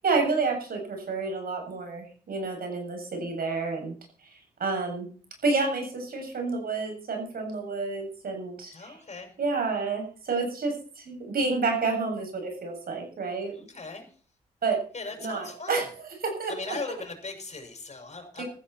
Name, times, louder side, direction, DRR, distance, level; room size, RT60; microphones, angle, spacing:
voice 1, 0.0-3.9 4.2-5.1 5.4-9.0 9.4-13.5 14.6-14.8 15.2-15.8 16.2-16.8 18.4-18.5, right 4 dB, 65° right, 3 dB, 7.9 m, -29 dB
voice 2, 8.7-9.3 13.5-14.1 14.9-15.8 16.5-18.4, left 3 dB, 45° left, 4 dB, 6.3 m, -38 dB
15.5 x 14.5 x 4.6 m, 0.42 s
supercardioid pair, 50°, 16 cm